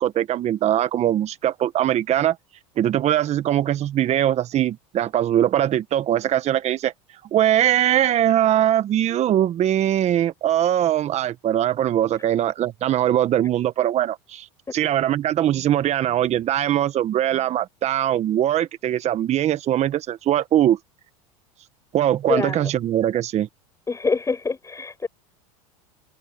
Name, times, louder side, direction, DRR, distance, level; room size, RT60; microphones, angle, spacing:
voice 1, 0.0-2.4 2.8-6.9 7.3-14.5 14.7-20.8 21.9-23.5, right 11 dB, 40° right, 1.3 m, -21 dB
voice 2, 22.3-22.7 23.9-25.1, left 4 dB, 15° left, 8.0 m, -25 dB
hypercardioid pair, 100°, 18 cm